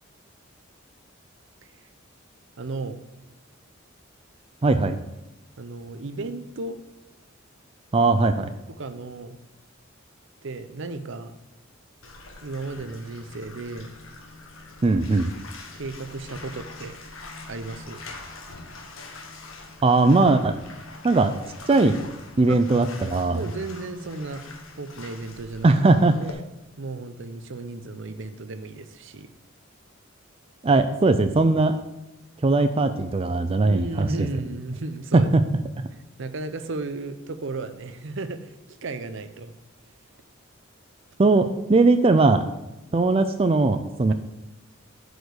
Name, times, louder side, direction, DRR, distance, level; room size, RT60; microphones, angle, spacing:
voice 1, 2.6-3.0 5.6-6.8 8.8-9.4 10.4-11.3 12.4-13.9 15.7-17.0 17.5-18.0 22.5-22.6 23.3-24.4 24.8-26.3 26.8-29.3 33.7-35.3 35.9-39.5, right 3 dB, 65° right, 10 dB, 0.7 m, -34 dB
voice 2, 4.6-5.0 7.9-8.5 14.8-15.3 19.8-20.5 21.0-21.3 21.7-22.0 22.4-23.4 25.6-26.2 30.6-31.8 32.4-34.1 35.1-35.4 41.2-42.4 42.9-44.1, right 3 dB, 30° right, 8 dB, 0.4 m, -19 dB
Bathtub (filling or washing), 12.0-26.3, left 3 dB, 85° left, 1.4 m, -43 dB
8.1 x 5.1 x 6.4 m, 0.94 s
head